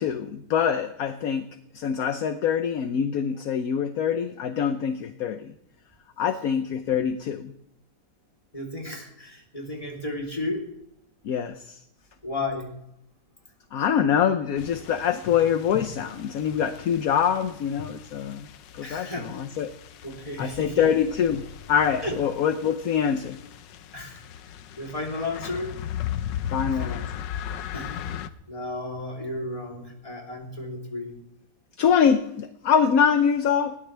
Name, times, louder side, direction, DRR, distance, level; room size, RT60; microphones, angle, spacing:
voice 1, 0.0-1.5 1.7-5.5 6.2-7.5 11.2-11.8 13.7-18.5 18.7-19.7 20.4-23.4 26.5-27.3 31.8-33.8, left 8 dB, 60° left, 9 dB, 1.1 m, -24 dB
voice 2, 8.5-10.6 12.2-12.7 18.8-19.3 20.0-20.8 22.0-22.2 23.9-24.2 24.8-25.7 26.8-26.9 27.7-28.2 28.5-31.1, left 2 dB, 20° left, -1 dB, 3.4 m, -33 dB
sound 1, 14.6-28.3, left 10 dB, 80° left, 1.4 m, -37 dB
21.0 x 17.5 x 3.4 m, 0.78 s
omnidirectional pair, 1.9 m